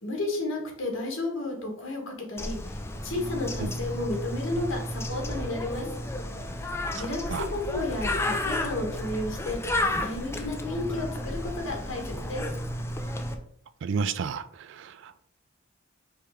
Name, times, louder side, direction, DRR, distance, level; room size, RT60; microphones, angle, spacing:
voice 1, 0.0-5.9 6.9-12.4, left 2 dB, 65° left, 1.3 m, -32 dB
Bird, 2.4-13.4, left 1 dB, 15° left, 0.4 m, -32 dB
voice 2, 13.8-15.3, right 5 dB, 65° right, 0.3 m, -31 dB
4.8 x 3.0 x 3.5 m
head